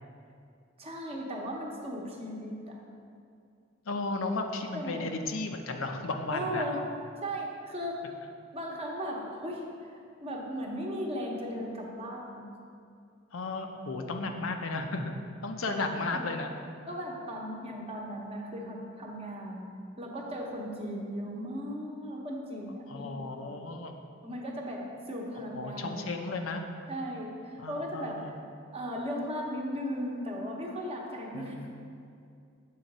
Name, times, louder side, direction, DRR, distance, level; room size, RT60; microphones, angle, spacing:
voice 1, 0.8-2.8 4.7-5.1 6.3-6.8 7.2-8.0 8.5-12.5 15.7-16.3 16.9-19.7 20.0-23.2 24.2-26.4 26.9-28.3 28.7-31.6, equal, 30° right, -1 dB, 0.9 m, -37 dB
voice 2, 3.9-6.7 13.3-15.1 15.4-16.5 22.9-23.9 25.5-26.6 27.6-28.3 31.3-31.8, left 3 dB, 85° left, 4 dB, 0.6 m, -34 dB
7.6 x 3.9 x 5.3 m, 2.4 s
head